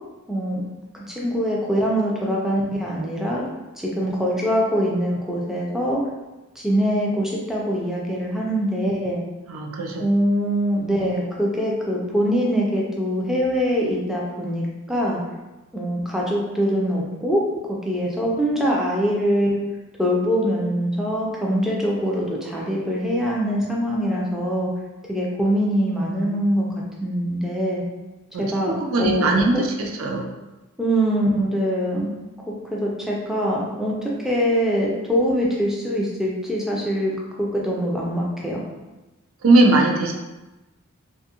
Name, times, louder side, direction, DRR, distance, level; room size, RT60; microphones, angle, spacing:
voice 1, 0.3-0.6 1.1-3.5 3.8-6.0 6.6-9.2 10.0-15.2 15.7-17.4 17.7-19.6 20.0-24.7 25.1-26.7 27.0-27.8 28.4-29.9 30.8-32.1 32.5-38.6, equal, ahead, -4 dB, 0.4 m, -23 dB
voice 2, 9.5-10.0 28.3-30.3 39.4-40.1, right 2 dB, 70° right, 0 dB, 0.4 m, -20 dB
2.5 x 2.3 x 2.8 m, 1.1 s
head